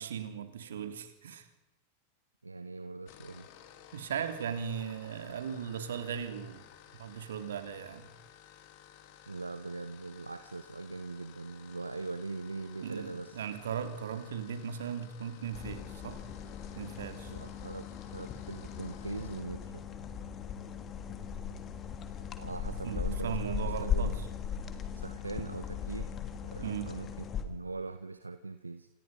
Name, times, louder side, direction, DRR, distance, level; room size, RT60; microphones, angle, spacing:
voice 1, 0.0-1.5 3.9-6.6 7.0-8.1 12.8-16.2 16.7-17.3 22.8-24.1 26.6-26.9, right 7 dB, 65° right, 8 dB, 3.2 m, -38 dB
voice 2, 2.4-3.5 9.3-13.4 17.3-19.8 22.4-24.2 24.9-26.1 26.5-28.9, right 3 dB, 80° right, 11 dB, 1.1 m, -41 dB
sound 1, 3.1-19.5, left 10 dB, 45° left, 3.5 m, -56 dB
sound 2, 15.5-27.4, left 7 dB, 25° left, 2.9 m, -38 dB
28.5 x 28.0 x 5.5 m, 1.0 s
figure-of-eight pair, 90°, 0 cm